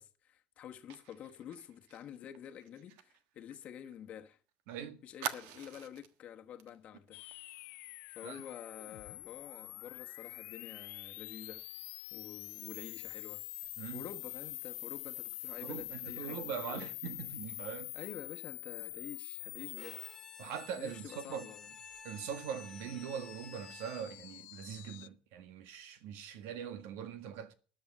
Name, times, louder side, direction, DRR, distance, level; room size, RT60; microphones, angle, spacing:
voice 1, 0.0-4.4 5.0-7.2 8.1-11.6 12.1-13.4 13.9-16.9 17.9-20.0 20.7-21.7, left 9 dB, 35° left, 1.3 m, -49 dB
Fire, 0.9-4.3 4.6-4.7 5.2-6.2 6.6-6.8 7.1-7.3, right 10 dB, 85° right, 1.4 m, -45 dB
voice 2, 4.7-5.0 8.2-8.4 13.8-14.1 15.6-17.9 20.4-21.5 22.0-27.5, right 8 dB, 70° right, 1.7 m, -42 dB
sound 1, 7.1-25.1, left 23 dB, 70° left, 0.5 m, -46 dB
Bowed string instrument, 19.8-24.4, left 3 dB, 5° left, 2.8 m, -54 dB
13.5 x 9.4 x 5.4 m
cardioid pair, 175°, 4 cm